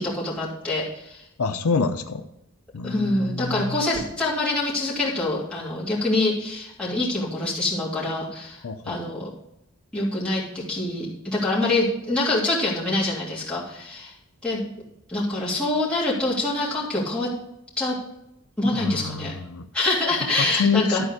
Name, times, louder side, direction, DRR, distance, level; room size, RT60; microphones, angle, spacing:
voice 1, 0.0-1.2 2.8-9.3 9.9-14.1 14.4-14.6 15.1-17.3 17.8-18.0 18.6-19.3 19.7-21.0, left 2 dB, 5° left, -8 dB, 2.9 m, -25 dB
voice 2, 1.4-2.2 2.7-3.8 8.6-9.2 18.6-19.7 20.4-21.1, left 5 dB, 75° left, 7 dB, 0.6 m, -27 dB
12.5 x 4.4 x 6.5 m, 0.84 s
head